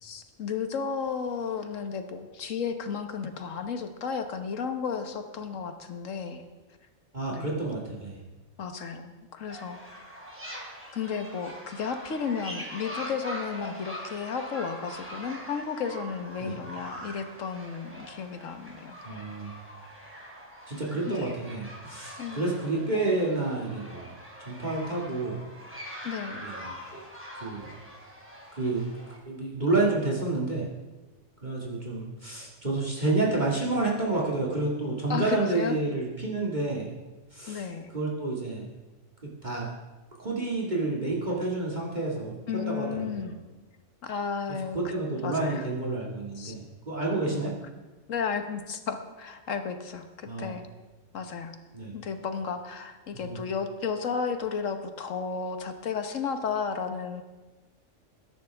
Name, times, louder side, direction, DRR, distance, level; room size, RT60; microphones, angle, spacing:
voice 1, 0.0-6.4 7.3-7.6 8.6-10.0 10.9-19.2 22.2-22.4 26.0-26.4 35.1-35.8 37.5-37.9 42.5-43.4 44.0-44.8 45.2-45.7 46.4-46.5 47.2-47.4 48.1-50.6 51.1-51.5 51.9-57.2, left 6 dB, 75° left, 7 dB, 1.5 m, -33 dB
voice 2, 7.1-8.2 16.4-16.6 19.0-19.5 20.7-24.1 24.5-25.4 26.4-27.0 27.4-27.7 28.6-28.9 29.3-30.7 31.4-36.9 37.3-37.6 37.9-38.7 39.2-39.7 40.2-43.3 44.7-47.5 50.3-50.5 51.7-51.9 53.2-53.4, right 2 dB, 35° right, -3 dB, 2.2 m, -29 dB
sound 1, 9.5-29.2, equal, 10° right, 2.9 m, -43 dB
21.0 x 11.0 x 3.5 m, 1.2 s
omnidirectional pair, 1.3 m